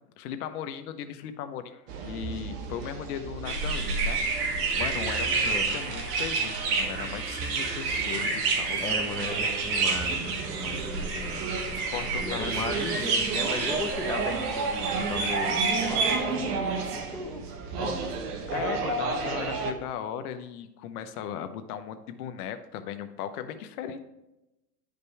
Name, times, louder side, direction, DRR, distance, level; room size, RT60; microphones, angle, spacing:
voice 1, 0.2-8.9 11.7-13.1 18.5-24.0, left 9 dB, 70° left, 9 dB, 0.9 m, -37 dB
sound 1, 1.9-19.7, right 4 dB, 75° right, 1.3 m, -34 dB
sound 2, 3.4-16.2, right 4 dB, 55° right, 2.0 m, -29 dB
voice 2, 8.8-11.4 12.2-16.6 16.9-17.4 17.8-18.1, left 3 dB, 5° left, 2 dB, 0.9 m, -36 dB
11.0 x 5.2 x 3.4 m, 0.93 s
supercardioid pair, 115°, 47 cm